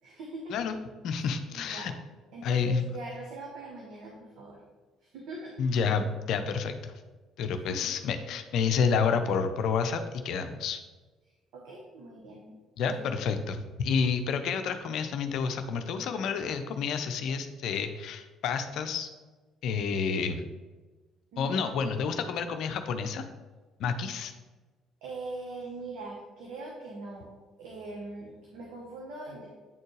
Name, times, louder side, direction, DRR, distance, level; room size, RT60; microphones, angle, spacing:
voice 1, 0.0-0.6 1.1-1.9 2.3-4.6 5.0-5.5 7.5-7.9 11.5-12.5 12.8-13.5 21.3-21.7 25.0-27.3 27.6-29.5, right 2 dB, 70° right, -2 dB, 1.1 m, -42 dB
voice 2, 1.0-1.9 2.4-2.8 5.6-6.9 7.4-10.8 12.8-19.1 19.6-20.5 21.4-23.2 23.8-24.3, left 6 dB, 65° left, 8 dB, 0.5 m, -29 dB
8.8 x 4.3 x 3.2 m, 1.3 s
hypercardioid pair, 55°, 0 cm